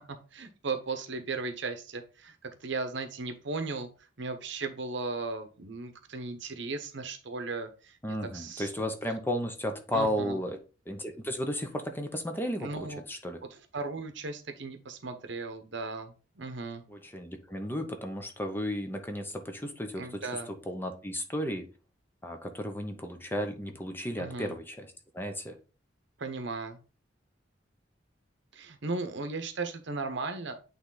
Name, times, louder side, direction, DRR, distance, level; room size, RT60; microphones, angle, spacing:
voice 1, 0.3-3.9 4.2-8.0 8.2-8.7 9.9-10.4 12.6-13.0 13.7-16.8 20.0-20.5 24.2-24.5 26.2-26.8 28.5-30.5, right 3 dB, 65° right, 7 dB, 0.9 m, -36 dB
voice 2, 8.0-10.6 10.9-13.4 16.9-20.3 20.7-21.7 22.2-24.9 25.1-25.5, equal, 10° left, 5 dB, 0.8 m, -34 dB
8.7 x 3.3 x 3.9 m, 0.34 s
head